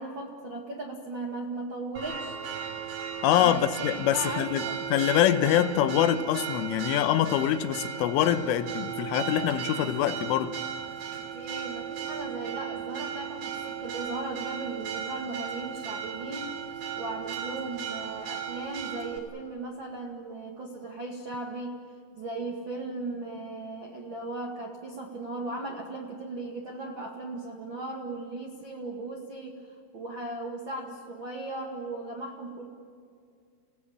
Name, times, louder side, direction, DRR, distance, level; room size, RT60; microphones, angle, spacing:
voice 1, 0.0-2.4 3.3-3.9 4.1-4.8 11.3-16.5 16.9-21.8 22.1-32.7, right 2 dB, 75° right, 1.1 m, -37 dB
Church bell, 2.0-19.2, right 8 dB, 45° right, 4.2 m, -36 dB
voice 2, 3.2-10.6, left 11 dB, 85° left, 3.4 m, -25 dB
29.5 x 17.5 x 8.7 m
omnidirectional pair, 5.7 m